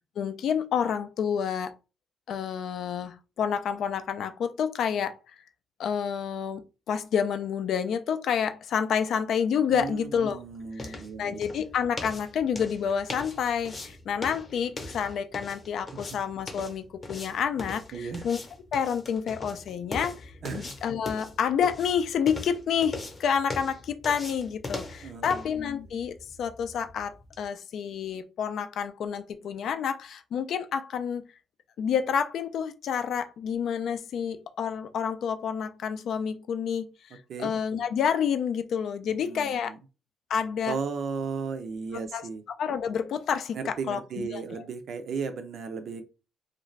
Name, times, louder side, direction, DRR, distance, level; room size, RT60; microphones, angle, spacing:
voice 1, 0.2-1.7 2.3-5.3 5.8-6.6 6.9-10.4 10.8-18.4 18.7-31.2 31.8-39.7 40.3-40.8 42.1-42.2 42.6-44.4, left 7 dB, 65° left, 0.4 m, -29 dB
sound 1, 9.6-27.5, left 2 dB, 30° left, 0.8 m, -41 dB
voice 2, 9.7-11.4 15.9-16.2 17.9-18.3 20.4-20.7 25.0-25.4 37.3-37.5 39.1-39.8 40.7-42.4 43.5-46.0, right 5 dB, 60° right, 0.5 m, -35 dB
2.5 x 2.3 x 3.1 m
cardioid pair, 130°, 0 cm